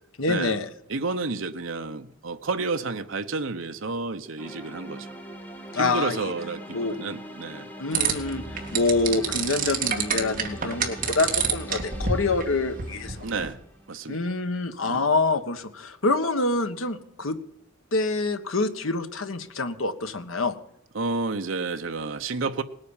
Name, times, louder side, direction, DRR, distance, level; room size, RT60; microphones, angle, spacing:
voice 1, 0.2-0.7 5.7-6.3 6.7-7.0 7.8-13.2 14.1-17.4 17.9-20.6, left 3 dB, 80° left, 9 dB, 1.4 m, -26 dB
voice 2, 0.9-5.1 5.7-7.7 13.2-13.6 13.9-14.2 14.8-15.0 20.9-22.6, right 3 dB, 70° right, 7 dB, 0.9 m, -30 dB
sound 1, 4.4-14.4, right 1 dB, 10° left, 1.7 m, -42 dB
sound 2, 7.9-13.5, right 6 dB, 40° right, 2.2 m, -29 dB
19.0 x 9.4 x 7.2 m, 0.75 s
head